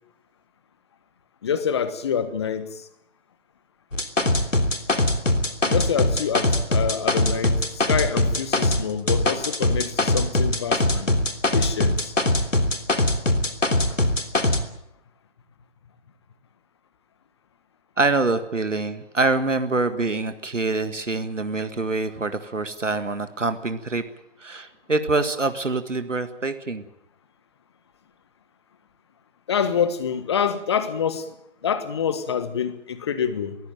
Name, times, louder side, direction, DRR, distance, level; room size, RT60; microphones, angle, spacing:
voice 1, 1.4-2.9 5.6-7.6 7.9-11.1 11.5-12.1 13.9-14.0 29.5-31.3 31.6-33.6, left 7 dB, 20° left, 1.3 m, -26 dB
sound 1, 3.9-8.8 9.1-14.6, left 1 dB, 85° left, 3.3 m, -21 dB
voice 2, 18.0-24.0 24.4-26.8, right 3 dB, 75° right, 1.9 m, -25 dB
22.5 x 16.0 x 9.2 m
figure-of-eight pair, 155°, 37 cm